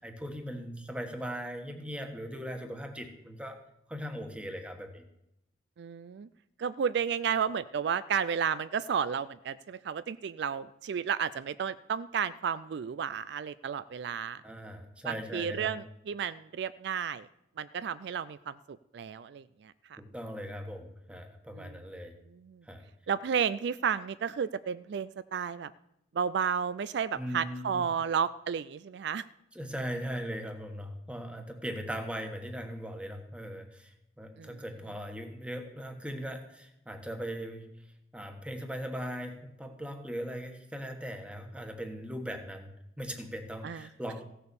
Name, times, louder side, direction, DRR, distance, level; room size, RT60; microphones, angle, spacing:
voice 1, 0.0-3.6 3.9-5.0 14.4-15.8 20.0-22.1 22.6-22.9 27.1-27.9 29.5-37.9 38.1-44.2, equal, 5° right, 5 dB, 1.4 m, -39 dB
voice 2, 5.8-6.3 6.6-14.4 15.0-17.3 17.6-20.0 21.5-21.8 22.3-22.6 23.1-25.7 26.1-29.2 34.4-34.6 43.6-43.8, right 7 dB, 65° right, 15 dB, 0.4 m, -32 dB
15.5 x 6.7 x 6.9 m, 0.82 s
head